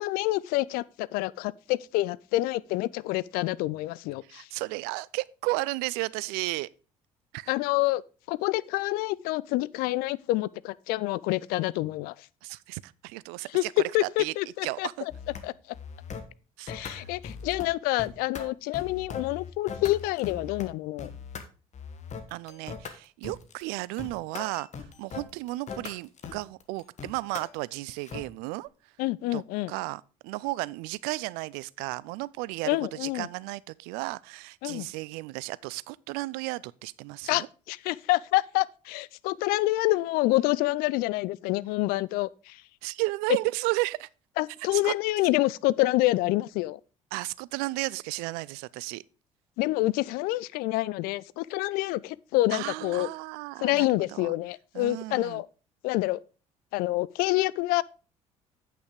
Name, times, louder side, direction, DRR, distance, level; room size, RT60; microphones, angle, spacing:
voice 1, 0.0-4.5 7.5-8.0 8.3-12.1 13.5-13.6 13.9-14.9 15.4-15.5 16.7-21.1 29.0-29.7 32.7-33.3 34.6-34.9 37.3-42.6 44.4-46.8 49.6-53.1 53.6-55.5 55.8-56.2 56.7-57.8, left 18 dB, 60° left, 0.4 m, -27 dB
voice 2, 4.3-6.7 7.3-7.5 12.4-14.3 14.6-15.1 16.6-17.1 22.3-24.7 25.0-28.7 29.3-29.4 29.7-37.5 42.8-44.1 44.6-44.9 47.1-49.0 52.5-54.3 54.7-55.4, right 22 dB, 60° right, 0.4 m, -34 dB
sound 1, 15.1-15.4 15.7-16.3 16.7-17.7 18.0-20.7 21.0-21.4 21.7-28.3, left 5 dB, 40° left, 1.3 m, -40 dB
8.7 x 5.7 x 5.0 m
figure-of-eight pair, 55°, 18 cm